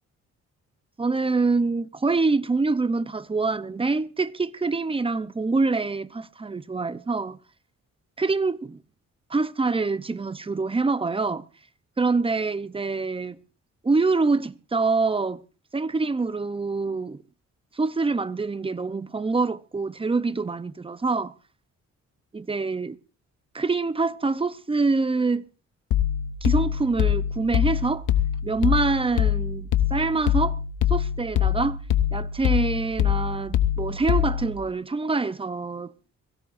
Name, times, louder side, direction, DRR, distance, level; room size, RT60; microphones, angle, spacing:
voice 1, 1.0-7.4 8.2-8.8 9.3-11.4 12.0-13.4 13.8-15.4 15.7-17.2 17.7-21.3 22.3-23.0 23.5-25.5 26.4-28.1 28.4-30.6 30.9-31.8 32.1-35.9, right 3 dB, 20° right, 0.6 m, -25 dB
sound 1, 25.9-34.6, left 10 dB, 90° left, 0.9 m, -24 dB
22.5 x 16.0 x 2.6 m
cardioid pair, 110°, 30 cm